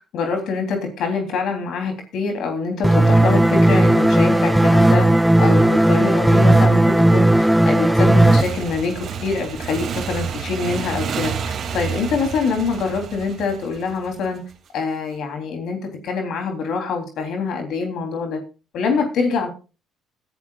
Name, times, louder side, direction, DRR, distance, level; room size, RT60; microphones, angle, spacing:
voice 1, 0.1-5.1 5.4-14.4 14.7-18.4 18.7-19.5, left 4 dB, 70° left, 4 dB, 3.4 m, -25 dB
sound 1, 2.8-8.4, right 1 dB, 5° right, 0.9 m, -14 dB
Motorcycle / Engine, 8.2-14.5, right 7 dB, 55° right, 2.6 m, -30 dB
20.5 x 11.0 x 2.4 m, 0.32 s
supercardioid pair, 65°, 0 cm